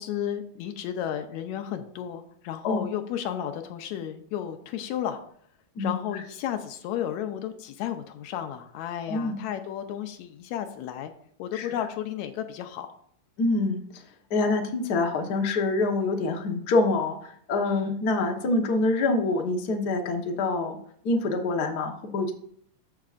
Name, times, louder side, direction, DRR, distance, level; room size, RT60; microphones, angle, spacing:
voice 1, 0.0-5.2 5.8-11.1 11.4-12.9 17.6-18.0, left 10 dB, 80° left, 8 dB, 2.0 m, -33 dB
voice 2, 9.1-9.4 11.5-11.7 13.4-13.8 14.3-20.8 21.0-22.3, left 2 dB, 50° left, 2 dB, 1.2 m, -26 dB
13.0 x 6.9 x 2.5 m, 0.64 s
omnidirectional pair, 3.3 m